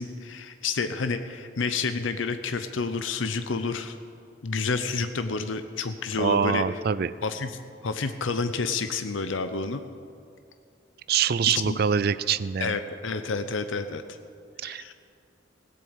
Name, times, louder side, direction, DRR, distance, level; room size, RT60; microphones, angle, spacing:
voice 1, 0.0-4.0 4.4-6.6 7.2-9.8 11.5-11.8 12.6-14.2 14.6-14.9, left 4 dB, 85° left, 9 dB, 0.7 m, -29 dB
voice 2, 6.2-7.1 11.1-12.8 14.6-14.8, right 7 dB, 55° right, 15 dB, 0.4 m, -24 dB
17.0 x 7.8 x 7.9 m, 2.4 s
head